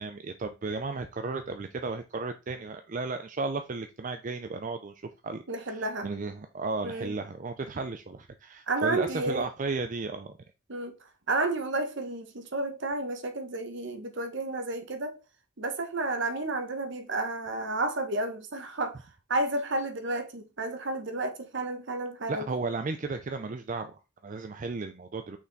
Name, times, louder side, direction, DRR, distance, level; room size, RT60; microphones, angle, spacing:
voice 1, 0.0-10.4 22.3-25.4, right 3 dB, 40° right, 0.4 m, -34 dB
voice 2, 5.5-6.1 6.8-7.1 8.7-9.5 10.7-10.9 11.3-15.2 15.6-19.0 19.3-22.5, right 2 dB, 55° right, 1.0 m, -31 dB
5.9 x 4.1 x 4.0 m
head